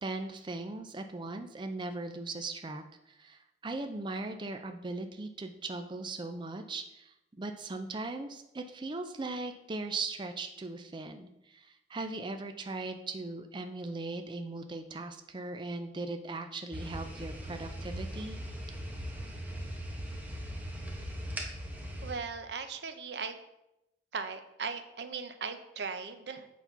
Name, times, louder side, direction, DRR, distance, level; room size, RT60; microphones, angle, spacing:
voice 1, 0.0-18.4, right 3 dB, 25° right, 6 dB, 0.5 m, -39 dB
sound 1, 16.7-22.1, equal, 10° right, 1.2 m, -39 dB
voice 2, 22.0-23.4 24.1-26.5, right 5 dB, 70° right, 10 dB, 0.7 m, -38 dB
8.0 x 4.1 x 5.9 m, 0.87 s
head